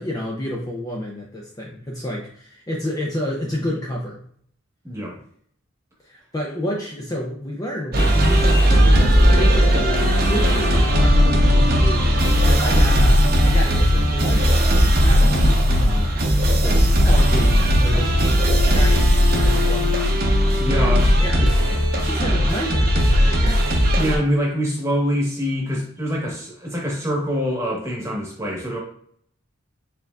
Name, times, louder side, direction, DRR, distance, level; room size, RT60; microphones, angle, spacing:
voice 1, 0.0-4.2 6.0-14.7 15.0-16.1 16.6-20.2 20.7-21.5 21.9-23.6 23.9-24.0, equal, 20° left, -2 dB, 0.5 m, -30 dB
voice 2, 4.8-5.2 20.6-21.5 24.0-28.8, equal, 15° right, -2 dB, 1.1 m, -25 dB
King of the Concrete Jungle Loop, 7.9-24.2, equal, 50° right, 0.8 m, -17 dB
4.4 x 3.8 x 2.3 m, 0.62 s
head